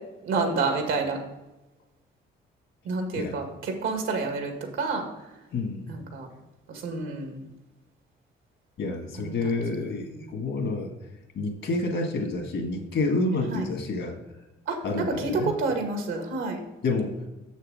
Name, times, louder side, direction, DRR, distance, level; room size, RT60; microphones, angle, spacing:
voice 1, 0.2-1.2 2.8-5.1 5.9-6.3 6.7-7.4 9.2-9.5 10.0-10.3 13.5-13.7 14.7-16.6, right 3 dB, 80° right, 3 dB, 1.9 m, -29 dB
voice 2, 5.5-5.9 8.8-10.9 11.4-14.2 14.8-15.5 16.8-17.2, left 3 dB, 65° left, 3 dB, 1.9 m, -28 dB
6.9 x 6.5 x 4.9 m, 1.0 s
cardioid pair, 90°, 20 cm